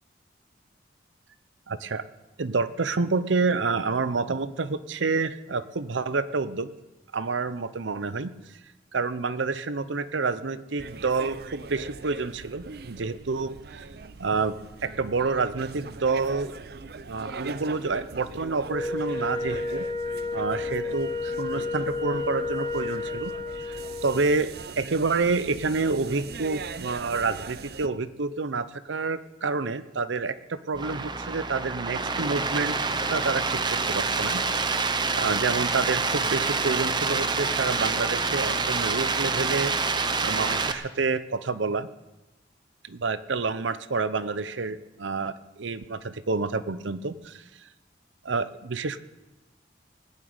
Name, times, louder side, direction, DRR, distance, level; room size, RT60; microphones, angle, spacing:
voice 1, 1.7-2.0 2.4-6.7 7.1-8.3 8.9-13.9 14.2-14.6 14.8-16.5 17.0-19.9 20.3-23.3 23.6-32.8 33.1-34.4 35.1-39.7 40.2-41.9 42.9-47.4 48.2-49.0, right 4 dB, 90° right, 14 dB, 0.7 m, -28 dB
sound 1, 10.8-27.9, right 4 dB, 55° right, 0.5 m, -41 dB
Wind instrument woodwind instrument, 18.7-24.3, left 3 dB, 20° left, 1.3 m, -31 dB
sound 2, 30.7-40.7, right 4 dB, 25° right, 0.7 m, -27 dB
19.0 x 7.5 x 8.8 m, 1.0 s
head